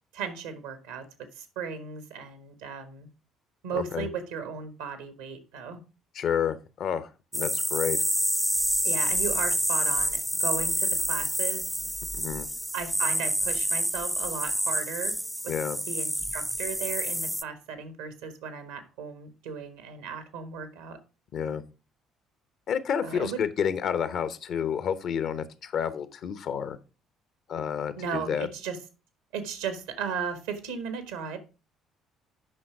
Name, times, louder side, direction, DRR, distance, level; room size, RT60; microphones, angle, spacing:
voice 1, 0.1-3.1 3.6-5.8 8.8-11.9 12.7-15.2 15.4-15.5 15.9-21.0 23.0-23.4 28.0-28.8 29.3-31.4, right 6 dB, 80° right, 9 dB, 1.5 m, -36 dB
voice 2, 3.7-4.1 6.1-8.0 12.1-12.5 15.5-15.8 21.3-21.6 22.7-26.8 27.5-28.5, left 8 dB, 60° left, 14 dB, 0.9 m, -30 dB
sound 1, 7.3-17.4, equal, 5° right, 0.5 m, -28 dB
8.7 x 5.8 x 4.7 m, 0.32 s
hypercardioid pair, 55°, 0 cm